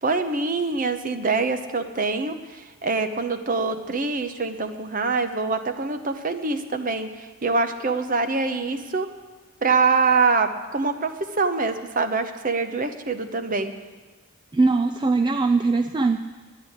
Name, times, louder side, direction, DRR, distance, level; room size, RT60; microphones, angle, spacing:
voice 1, 0.0-9.1 9.6-13.7, right 4 dB, 40° right, 9 dB, 0.8 m, -24 dB
voice 2, 14.5-16.2, right 3 dB, 20° right, 7 dB, 0.3 m, -21 dB
11.5 x 10.0 x 8.9 m, 1.3 s
head